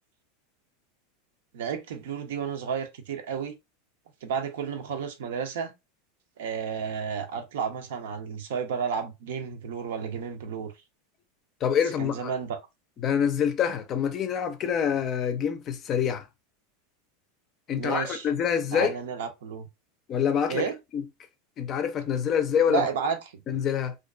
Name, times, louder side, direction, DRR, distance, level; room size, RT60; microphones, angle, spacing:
voice 1, 1.5-3.5 4.2-5.7 6.4-10.7 12.0-12.6 17.8-18.3 18.7-19.7 20.5-20.8 22.7-23.4, right 6 dB, 75° right, 0.5 m, -32 dB
voice 2, 11.6-12.3 13.0-16.3 17.7-18.9 20.1-20.6 20.9-21.0 21.6-22.9 23.5-24.0, left 8 dB, 40° left, 0.4 m, -26 dB
2.4 x 2.2 x 2.3 m
hypercardioid pair, 110°, 0 cm